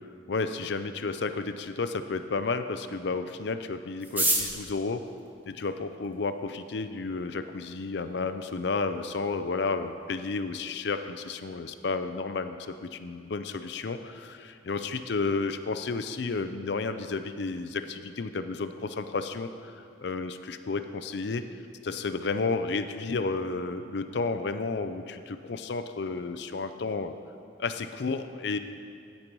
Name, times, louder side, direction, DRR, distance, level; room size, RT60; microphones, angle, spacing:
voice 1, 0.3-5.0 5.5-21.4 21.8-27.1 27.6-28.6, left 4 dB, 60° left, 9 dB, 0.5 m, -32 dB
sound 1, 4.0-6.2 7.0-7.1 7.4-7.5 7.7-8.2 8.5-8.6 8.8-9.2 9.6-9.7 10.1-10.4, right 1 dB, 10° right, 0.8 m, -30 dB
15.5 x 5.3 x 4.6 m, 2.5 s
head